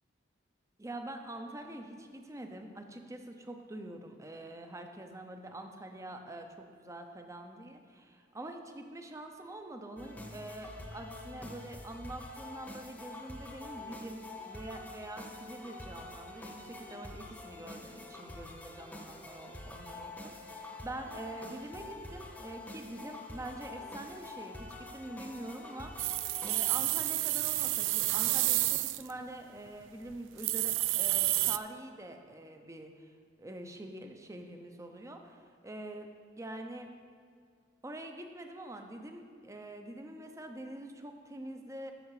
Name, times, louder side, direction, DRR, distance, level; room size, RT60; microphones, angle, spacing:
voice 1, 0.8-14.2 14.4-25.9 26.4-33.1 33.4-36.1 36.4-36.9 37.8-41.9, right 1 dB, 15° right, 5 dB, 0.7 m, -45 dB
sound 1, 10.0-26.7, left 2 dB, 10° left, 1.0 m, -46 dB
Pouring rice on a clay pot, 26.0-29.1 29.7-29.8 30.1-30.2 30.4-31.6, right 17 dB, 75° right, 0.3 m, -30 dB
13.0 x 6.4 x 4.8 m, 2.2 s
head